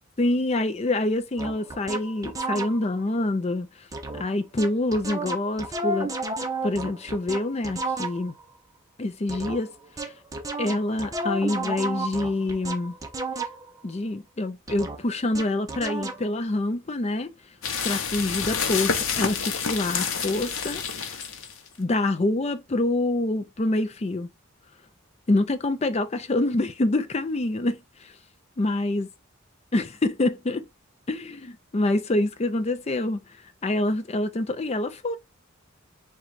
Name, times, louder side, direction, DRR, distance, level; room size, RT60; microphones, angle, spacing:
voice 1, 0.2-3.7 4.2-6.1 6.6-8.3 9.0-9.7 10.0-10.1 10.6-12.9 13.8-17.3 17.8-20.8 21.8-24.3 25.3-28.1 28.6-29.1 29.7-30.7 31.1-33.2 33.6-35.2, left 2 dB, 30° left, 0.5 m, -26 dB
sound 1, 1.4-3.0 3.9-4.3 4.6-8.4 9.3-13.8 14.7-16.3, right 2 dB, 15° right, 0.5 m, -32 dB
sound 2, 17.6-21.7, left 6 dB, 80° left, 0.8 m, -28 dB
3.8 x 2.3 x 4.5 m
head